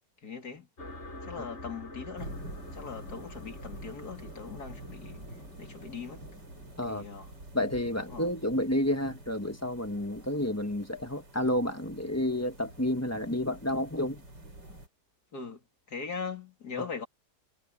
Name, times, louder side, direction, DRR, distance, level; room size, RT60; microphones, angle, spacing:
voice 1, 0.2-0.7 1.2-2.4 2.7-5.3 5.6-6.3 6.9-7.3 8.1-8.3 15.3-15.6 15.9-17.1, left 5 dB, 60° left, 3.4 m, -40 dB
sound 1, 0.8-10.0, left 1 dB, 40° left, 7.2 m, -49 dB
sound 2, 2.2-14.9, right 1 dB, 75° right, 7.4 m, -48 dB
voice 2, 7.5-14.2 16.8-16.9, left 1 dB, 10° left, 1.2 m, -30 dB
omnidirectional pair, 1.9 m